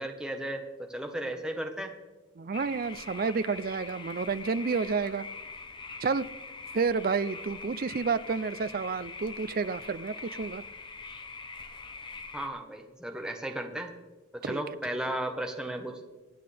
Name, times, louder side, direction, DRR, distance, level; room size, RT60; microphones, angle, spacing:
voice 1, 0.0-1.9 12.3-13.9 14.3-16.0, right 1 dB, 5° right, 1.2 m, -35 dB
voice 2, 2.4-5.3 6.0-6.3 6.7-10.6 14.4-14.6, right 5 dB, 45° right, 0.4 m, -30 dB
sound 1, 2.5-12.5, left 4 dB, 25° left, 0.9 m, -43 dB
25.5 x 9.6 x 3.4 m
head